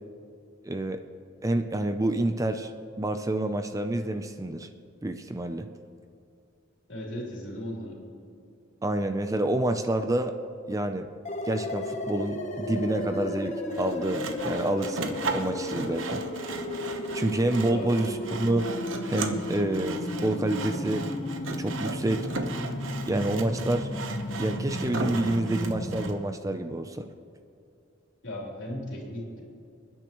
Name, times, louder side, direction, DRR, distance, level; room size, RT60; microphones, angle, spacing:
voice 1, 0.6-1.0 1.4-2.7 3.0-4.7 5.0-5.7 8.8-10.4 10.7-11.1 11.5-16.2 17.1-18.7 19.1-21.0 21.6-22.3 23.1-23.9 24.4-27.1, right 1 dB, 15° right, 8 dB, 0.5 m, -28 dB
voice 2, 6.9-8.0 17.7-17.9 28.2-29.4, left 1 dB, 65° left, -3 dB, 3.5 m, -36 dB
sound 1, 11.2-26.1, left 1 dB, 35° left, 1.0 m, -34 dB
Sawing, 13.7-26.2, right 3 dB, 80° right, 1.0 m, -36 dB
28.5 x 10.0 x 3.1 m, 2.6 s
head